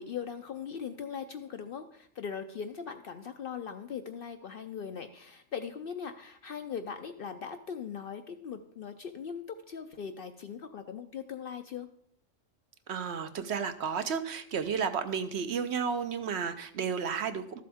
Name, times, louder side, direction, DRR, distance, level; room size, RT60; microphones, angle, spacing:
voice 1, 0.0-11.9, left 7 dB, 60° left, 8 dB, 0.6 m, -40 dB
voice 2, 12.9-17.6, right 6 dB, 60° right, 9 dB, 0.9 m, -32 dB
13.0 x 7.6 x 3.5 m, 0.67 s
omnidirectional pair, 1.3 m